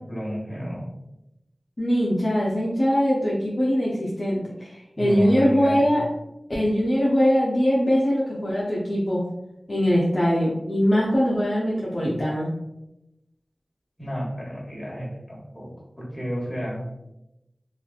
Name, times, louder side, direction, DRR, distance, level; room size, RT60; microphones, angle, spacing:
voice 1, 0.1-0.9 5.0-6.0 14.0-15.7 16.0-16.8, equal, 20° left, -5 dB, 1.3 m, -31 dB
voice 2, 1.8-6.0 6.5-9.2 9.7-12.5, equal, 50° left, -6 dB, 0.6 m, -22 dB
3.1 x 2.4 x 2.3 m, 0.89 s
wide cardioid pair, 40°, 0 cm